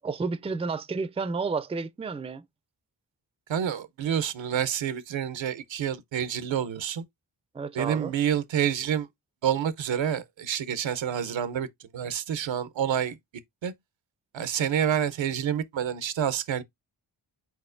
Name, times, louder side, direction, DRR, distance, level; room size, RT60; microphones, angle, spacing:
voice 1, 0.0-2.4 7.5-8.1, right 4 dB, 15° right, 0.4 m, -31 dB
voice 2, 3.5-7.1 7.7-9.1 9.4-11.7 11.9-13.2 13.6-13.7 14.3-16.6, right 9 dB, 75° right, 0.7 m, -28 dB
4.6 x 4.1 x 2.5 m
cardioid pair, 60°, 46 cm